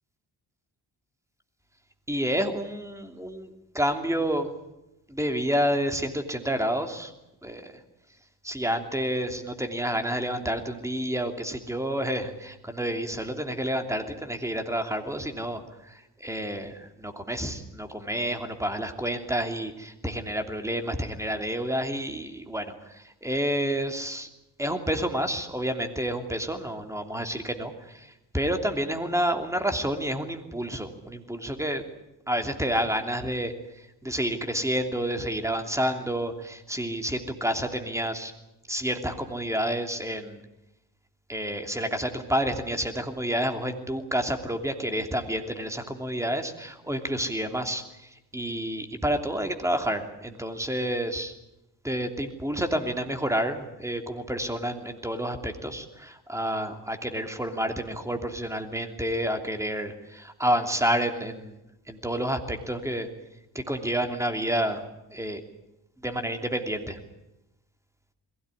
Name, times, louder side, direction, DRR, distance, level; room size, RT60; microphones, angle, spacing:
voice 1, 2.1-4.5 5.1-7.1 7.4-7.8 8.4-24.3 24.6-31.8 32.3-38.3 38.7-40.4 41.3-51.3 51.8-61.6 61.9-63.1 63.5-64.8 65.1-65.4 66.0-67.0, equal, 5° right, 5 dB, 2.9 m, -29 dB
22.0 x 16.5 x 9.8 m, 0.92 s
cardioid pair, 85°, 40 cm